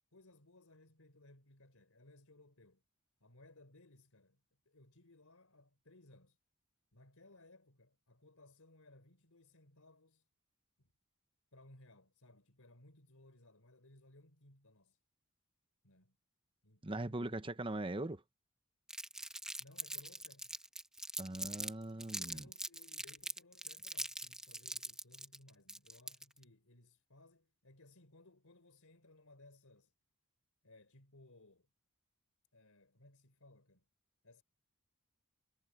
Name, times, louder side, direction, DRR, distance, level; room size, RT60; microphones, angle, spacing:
voice 1, 0.1-2.8 3.2-4.4 4.7-6.4 6.9-10.3 10.8-10.9 11.5-15.0 15.8-16.2 16.6-17.6 19.6-20.5 22.1-29.9 30.6-31.7 32.5-33.9 34.2-34.4, left 2 dB, 80° left, 4.1 m, -63 dB
voice 2, 16.8-18.2 21.2-22.5, right 2 dB, 25° right, 1.0 m, -40 dB
Crumpling crinkling, 18.9-21.7 22.0-26.4, right 1 dB, 5° right, 1.3 m, -43 dB
head